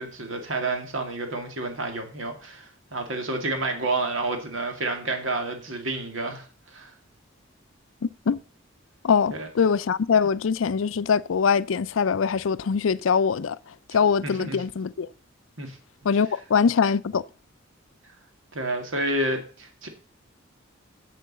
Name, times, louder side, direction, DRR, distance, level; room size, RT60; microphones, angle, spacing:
voice 1, 0.0-6.4 6.7-6.9 9.3-9.5 14.2-14.6 15.6-15.8 18.5-19.9, right 2 dB, 75° right, 2.1 m, -29 dB
voice 2, 8.0-8.4 9.0-13.6 13.9-15.1 16.0-17.2, left 6 dB, 80° left, 0.4 m, -23 dB
7.4 x 6.9 x 7.3 m
head